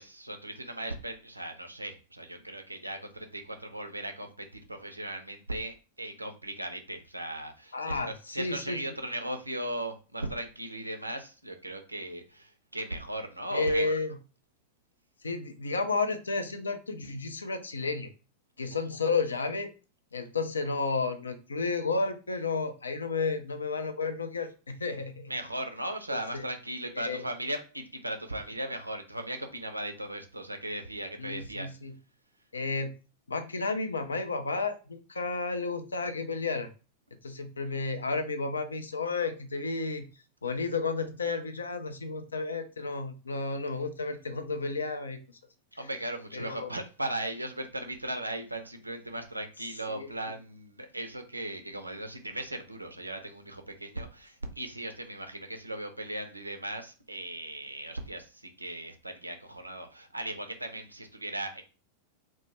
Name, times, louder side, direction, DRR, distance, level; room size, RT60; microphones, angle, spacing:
voice 1, 0.0-13.9 18.7-18.8 25.3-31.7 45.8-61.6, right 1 dB, 85° right, 7 dB, 0.4 m, -37 dB
voice 2, 7.7-8.8 13.5-14.2 15.2-18.1 18.6-19.7 20.1-25.3 26.3-26.4 27.0-27.2 31.2-31.9 32.5-32.9 33.3-36.7 37.2-40.0 40.4-45.2 46.3-46.7 49.9-50.1, left 4 dB, 75° left, 8 dB, 0.3 m, -32 dB
2.2 x 2.0 x 2.9 m, 0.33 s
figure-of-eight pair, 90°, 0 cm